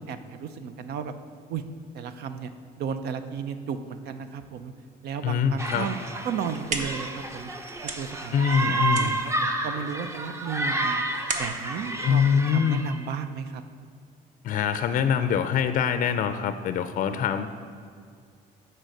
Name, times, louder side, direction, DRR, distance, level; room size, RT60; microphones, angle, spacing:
voice 1, 0.1-1.1 1.5-1.6 1.9-2.5 2.8-4.7 5.0-6.0 6.2-7.5 8.0-11.0 11.4-13.6 17.1-17.3, right 7 dB, 70° right, 10 dB, 0.6 m, -34 dB
voice 2, 5.2-5.9 8.3-9.2 12.0-12.9 14.4-17.5, left 7 dB, 50° left, 10 dB, 0.4 m, -24 dB
sound 1, 5.6-13.0, right 2 dB, 15° right, 0.6 m, -30 dB
sound 2, 6.3-13.1, right 3 dB, 45° right, 1.0 m, -37 dB
8.9 x 4.5 x 6.5 m, 2.2 s
cardioid pair, 110°, 17 cm